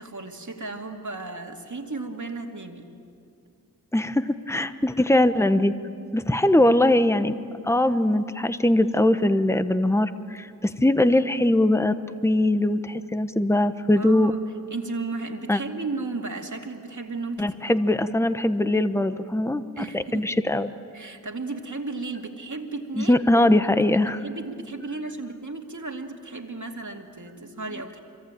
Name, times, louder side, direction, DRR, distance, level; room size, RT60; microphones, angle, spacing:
voice 1, 0.0-2.9 14.0-14.4 14.7-17.7 19.8-20.3 20.9-23.5 24.2-28.0, right 3 dB, 60° right, 3 dB, 2.4 m, -34 dB
voice 2, 3.9-5.7 6.1-7.3 7.6-12.0 12.2-14.3 15.5-15.6 17.4-20.7 23.0-24.2, left 1 dB, 10° left, 11 dB, 1.0 m, -21 dB
25.5 x 24.0 x 9.0 m, 2.4 s
cardioid pair, 40°, 34 cm